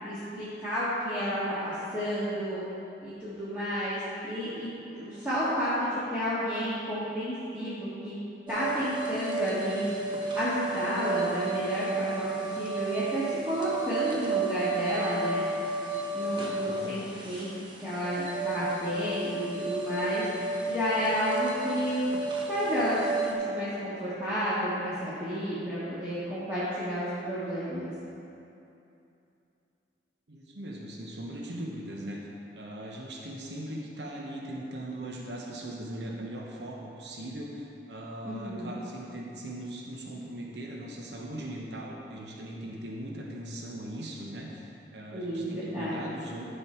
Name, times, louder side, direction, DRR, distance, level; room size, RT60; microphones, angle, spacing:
voice 1, 0.0-2.6 3.0-4.7 4.9-8.2 8.5-9.9 10.3-12.2 12.6-15.4 16.1-17.5 17.8-20.3 20.7-22.1 22.5-27.9 38.2-38.8 45.1-46.0, equal, 10° right, -13 dB, 1.8 m, -31 dB
sound 1, 8.5-23.3, right 3 dB, 25° right, 0.9 m, -32 dB
voice 2, 16.4-17.0 30.3-32.3 32.5-46.4, right 1 dB, 75° right, -2 dB, 1.0 m, -39 dB
12.5 x 5.4 x 4.5 m, 2.7 s
head